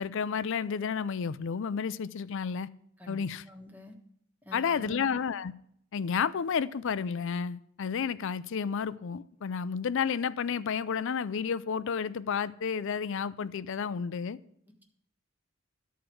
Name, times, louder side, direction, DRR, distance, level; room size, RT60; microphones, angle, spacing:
voice 1, 0.0-2.7 3.1-3.4 4.5-5.5 5.9-14.4, left 6 dB, 60° left, 0.4 m, -31 dB
voice 2, 3.0-3.9 4.4-5.1, left 1 dB, 10° right, 1.4 m, -46 dB
13.0 x 4.6 x 7.7 m
head